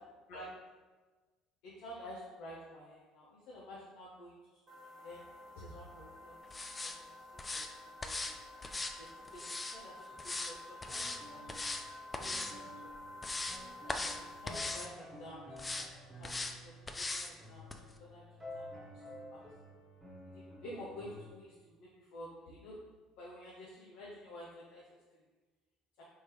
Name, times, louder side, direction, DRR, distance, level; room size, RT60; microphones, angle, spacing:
voice 1, 1.6-4.3 5.0-5.3 5.6-6.4 6.8-6.9 7.3-8.4 9.0-10.8 11.3-11.6 12.2-12.9 13.8-15.4 15.7-15.8 16.2-16.3 16.6-17.7 18.0-18.2 18.5-18.8 19.1-19.5 20.2-22.8 23.2-24.9 26.0-26.1, equal, 65° left, -5 dB, 0.6 m, -50 dB
sound 1, 4.7-14.7, left 2 dB, 35° right, 1.0 m, -51 dB
sound 2, 6.5-7.0 7.4-7.7 8.0-8.3 8.6-9.8 10.2-10.5 10.8-11.2 11.5-11.8 12.1-12.5 12.9-13.6 13.9-14.2 14.5-14.9 15.6-15.9 16.2-16.5 16.9-17.3 17.7-17.8, left 2 dB, 20° left, 0.3 m, -39 dB
sound 3, 10.9-21.3, left 1 dB, 20° right, 1.2 m, -51 dB
3.5 x 3.1 x 2.9 m, 1.3 s
figure-of-eight pair, 60°, 0 cm